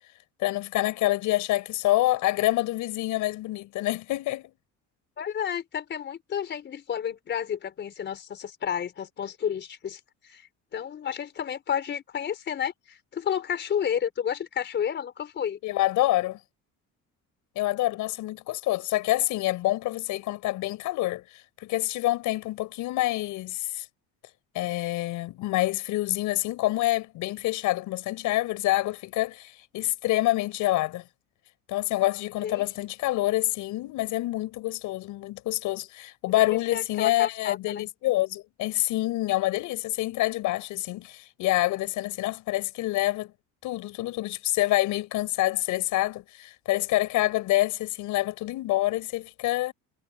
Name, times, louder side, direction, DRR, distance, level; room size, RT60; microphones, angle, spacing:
voice 1, 0.4-4.5 15.6-16.4 17.5-23.9 24.5-31.0 31.7-43.3 43.6-49.7, left 17 dB, 75° left, 6.1 m, -27 dB
voice 2, 5.2-15.6 32.4-32.6 36.4-37.8, left 8 dB, 35° left, 4.6 m, -31 dB
cardioid pair, 165°, 31 cm